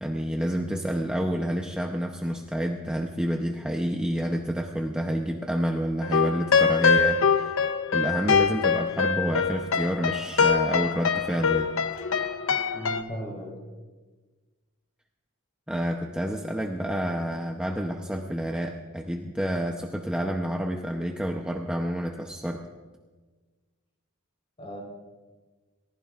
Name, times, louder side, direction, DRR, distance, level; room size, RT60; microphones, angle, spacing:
voice 1, 0.0-7.5 7.9-11.7 15.7-22.6, equal, 5° right, 1 dB, 0.7 m, -29 dB
sound 1, 6.0-13.0, left 6 dB, 65° left, 0.8 m, -24 dB
voice 2, 12.7-13.5 24.6-24.8, equal, 30° left, 0 dB, 3.9 m, -36 dB
29.0 x 15.0 x 2.5 m, 1.3 s
head